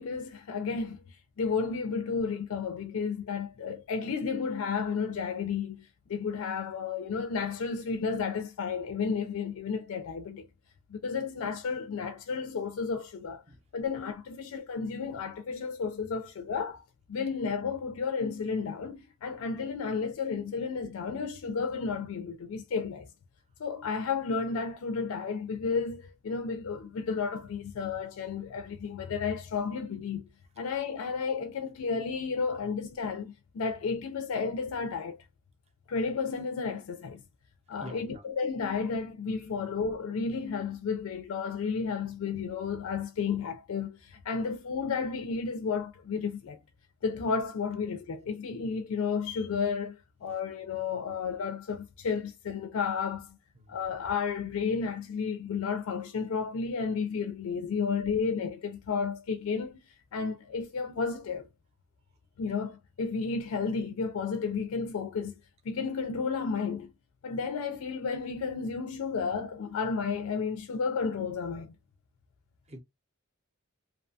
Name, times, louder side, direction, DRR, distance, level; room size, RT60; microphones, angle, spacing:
voice 1, 0.0-10.5 10.9-13.4 13.7-23.1 23.6-30.3 30.6-35.2 35.9-37.2 37.7-46.6 47.0-53.4 53.7-59.8 60.1-61.5 62.4-65.4 65.6-66.9 67.2-71.7, left 5 dB, 80° left, 0.4 m, -32 dB
voice 2, 37.8-38.2 39.5-39.7 53.6-53.7 72.7-72.8, equal, 30° right, 0.6 m, -46 dB
2.6 x 2.2 x 2.6 m
head